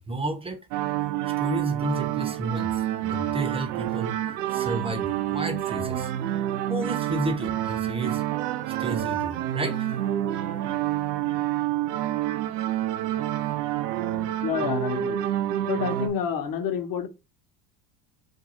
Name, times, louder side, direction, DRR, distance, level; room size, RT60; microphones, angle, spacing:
voice 1, 0.1-0.7 1.0-6.1 6.7-8.2 8.7-9.9, right 2 dB, 10° right, 0.7 m, -32 dB
sound 1, 0.7-16.1, right 12 dB, 85° right, 0.6 m, -28 dB
voice 2, 14.4-15.2 15.7-17.1, left 7 dB, 45° left, 0.9 m, -28 dB
2.6 x 2.3 x 4.1 m
hypercardioid pair, 90°, 47 cm